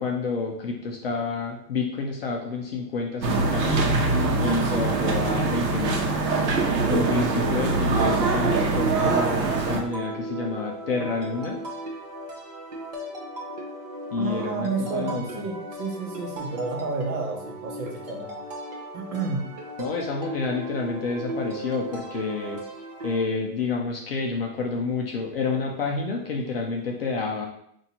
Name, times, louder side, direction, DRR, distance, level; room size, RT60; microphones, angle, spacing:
voice 1, 0.0-4.0 4.4-6.1 6.9-11.6 14.1-15.4 19.8-22.6 23.0-27.5, left 4 dB, 40° left, 0 dB, 0.4 m, -29 dB
sound 1, 3.2-9.8, right 3 dB, 90° right, 1.0 m, -23 dB
sound 2, 9.5-23.2, right 1 dB, 30° right, 0.5 m, -37 dB
voice 2, 14.2-18.3 18.9-19.5, right 4 dB, 60° right, 2 dB, 1.0 m, -31 dB
5.4 x 2.6 x 2.8 m, 0.68 s
supercardioid pair, 170°, 49 cm